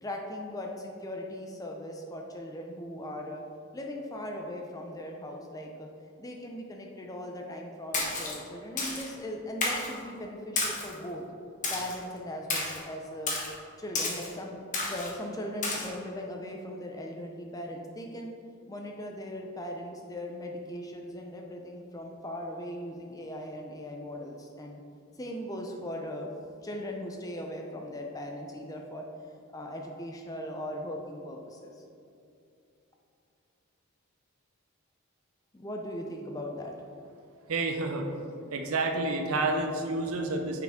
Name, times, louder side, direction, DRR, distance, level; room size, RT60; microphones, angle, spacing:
voice 1, 0.0-3.4 3.7-5.9 6.2-11.2 11.7-13.4 13.8-14.6 14.9-18.3 18.7-24.8 25.2-26.3 26.6-29.1 29.5-31.8 35.5-36.8, left 1 dB, 15° left, 1 dB, 0.4 m, -39 dB
Splash splatter, 7.9-8.3 8.8-9.1 9.6-9.9 10.6-10.9 11.6-12.0 12.5-12.8 13.3-13.5 13.9-14.3 14.7-15.1 15.6-15.9, left 3 dB, 35° left, 1.1 m, -31 dB
voice 2, 37.5-38.0 38.5-40.6, right 2 dB, 80° right, 3 dB, 0.6 m, -29 dB
9.2 x 4.7 x 3.6 m, 2.6 s
head